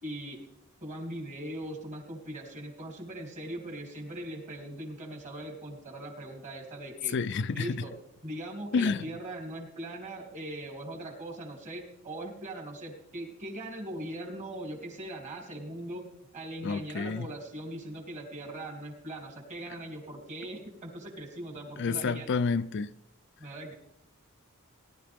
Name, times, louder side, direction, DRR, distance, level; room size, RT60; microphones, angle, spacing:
voice 1, 0.0-0.4 0.8-7.2 7.5-7.9 8.2-16.0 16.3-22.3 23.4-23.7, right 1 dB, 35° right, 3.1 m, -40 dB
voice 2, 7.1-7.8 8.7-9.0 16.6-17.3 21.8-22.9, left 4 dB, 55° left, 0.4 m, -29 dB
19.0 x 11.5 x 3.6 m
head